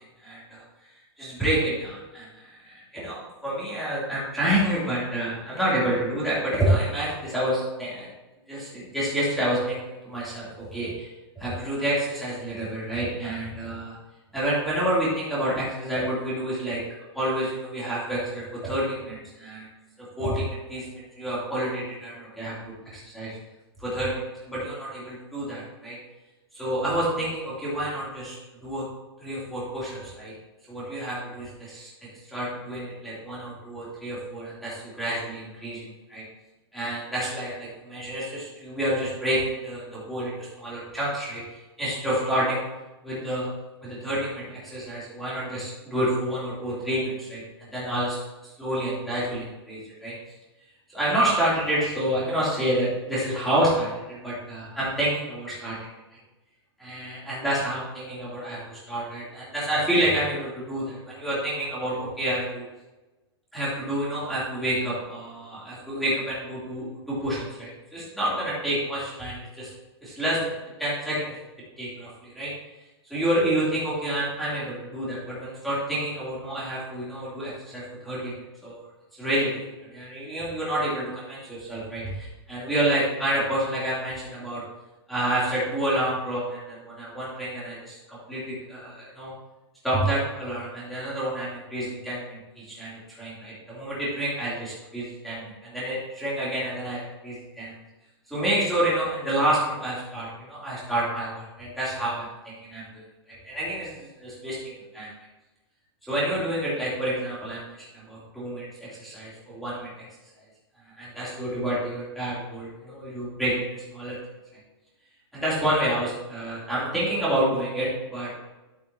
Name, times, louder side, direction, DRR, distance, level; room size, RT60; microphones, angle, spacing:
voice 1, 0.2-0.6 1.2-8.1 8.5-11.1 11.4-14.0 14.3-16.8 17.1-19.7 20.0-23.4 23.8-26.0 26.5-28.9 29.2-30.3 30.7-36.2 36.7-42.6 43.0-43.5 43.8-48.2 48.6-50.1 50.9-55.8 56.1-56.2 56.8-62.6 63.5-69.7 70.0-71.4 71.8-72.5 73.1-78.8 79.2-84.6 85.1-89.3 89.8-97.7 98.3-103.0 103.3-105.1 106.0-110.0 111.0-114.2 115.3-118.3, right 1 dB, ahead, -9 dB, 3.2 m, -29 dB
11.0 x 8.7 x 2.9 m, 1.1 s
supercardioid pair, 170°, 14 cm